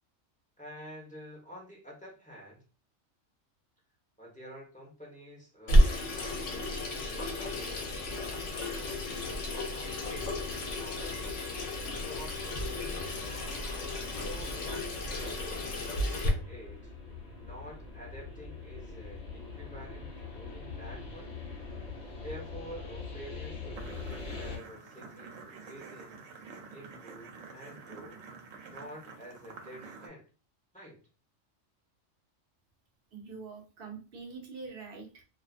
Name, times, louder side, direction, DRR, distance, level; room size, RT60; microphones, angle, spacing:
voice 1, 0.6-2.6 4.2-8.1 8.5-11.2 11.7-13.4 14.1-16.9 17.4-21.3 22.2-26.2 26.7-28.2 28.7-30.2 30.7-31.0, equal, 10° left, -4 dB, 0.6 m, -49 dB
Water tap faucet / Sink (filling or washing), 5.7-16.3, left 1 dB, 75° left, 1.0 m, -31 dB
sound 1, 8.5-24.6, left 4 dB, 50° left, 0.9 m, -44 dB
sound 2, 23.7-30.1, right 4 dB, 80° right, 1.0 m, -48 dB
voice 2, 33.1-35.2, right 4 dB, 55° right, 2 dB, 0.8 m, -44 dB
2.4 x 2.4 x 2.4 m, 0.34 s
omnidirectional pair, 1.3 m